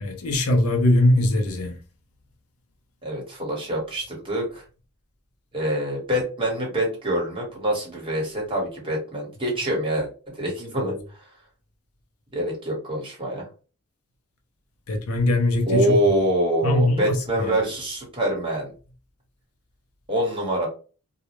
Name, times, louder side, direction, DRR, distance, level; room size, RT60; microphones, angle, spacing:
voice 1, 0.0-1.8 10.8-11.0 14.9-16.0 16.6-17.6, left 1 dB, 75° left, 0.6 m, -21 dB
voice 2, 3.0-4.6 5.5-10.9 12.3-13.5 15.7-18.7 20.1-20.7, right 1 dB, 25° right, 1.0 m, -25 dB
2.3 x 2.0 x 2.9 m
head